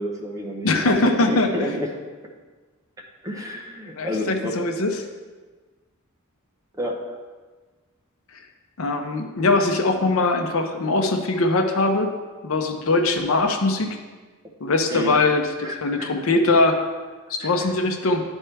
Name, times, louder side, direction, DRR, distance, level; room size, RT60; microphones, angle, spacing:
voice 1, 0.0-1.9 3.2-4.6 6.8-7.1 14.9-15.2 15.6-16.1 17.4-17.5, left 1 dB, 15° right, 0 dB, 0.8 m, -30 dB
voice 2, 0.6-1.8 4.0-4.9 8.8-12.1 12.4-14.0 14.6-16.8 17.4-18.2, left 2 dB, 70° left, 5 dB, 0.7 m, -21 dB
11.0 x 4.4 x 3.3 m, 1.3 s
head